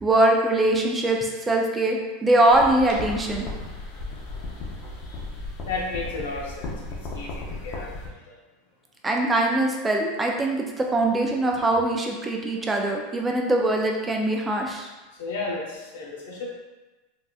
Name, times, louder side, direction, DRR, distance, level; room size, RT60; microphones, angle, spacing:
voice 1, 0.0-3.4 9.0-14.9, right 1 dB, 10° right, 0 dB, 0.4 m, -22 dB
sound 1, 2.5-8.1, left 2 dB, 45° left, 0.6 m, -35 dB
voice 2, 5.6-6.7 7.1-7.9 8.3-8.4 15.2-16.5, left 3 dB, 85° left, -3 dB, 0.8 m, -32 dB
4.0 x 2.3 x 2.3 m, 1.1 s
supercardioid pair, 150°, 0 cm